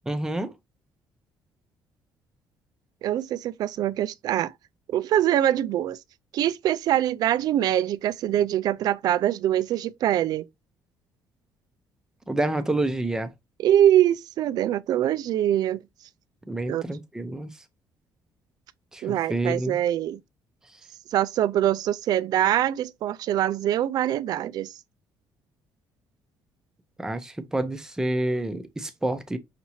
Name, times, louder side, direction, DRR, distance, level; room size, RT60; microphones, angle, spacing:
voice 1, 0.1-0.5 12.3-13.3 16.5-17.5 18.9-19.8 27.0-29.4, right 1 dB, 10° right, 0.7 m, -28 dB
voice 2, 3.0-4.5 4.9-6.0 6.3-10.4 13.6-15.8 16.7-16.8 19.0-20.2 21.1-24.7, right 11 dB, 60° right, 0.4 m, -23 dB
5.8 x 2.7 x 2.9 m
cardioid pair, 135°, 8 cm